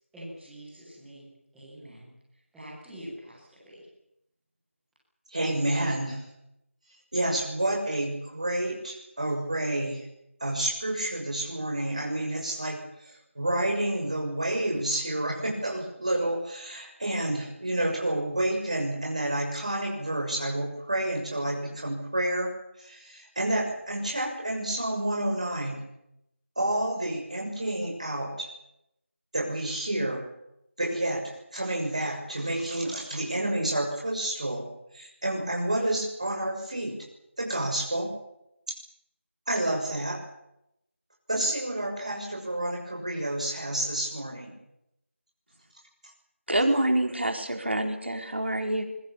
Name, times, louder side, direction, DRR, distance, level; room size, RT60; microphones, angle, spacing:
voice 1, 0.1-2.1 2.5-3.8, equal, ahead, -17 dB, 1.0 m, -45 dB
voice 2, 5.3-6.2 7.1-10.1 10.4-22.5 22.8-25.8 26.6-28.5 29.3-30.2 30.8-34.7 34.9-37.0 37.4-38.1 39.5-40.2 41.3-44.5, right 1 dB, 30° right, 0 dB, 6.5 m, -29 dB
voice 3, 46.5-48.8, right 1 dB, 55° right, 4 dB, 4.5 m, -26 dB
26.5 x 21.5 x 7.1 m, 0.81 s
figure-of-eight pair, 180°, 7 cm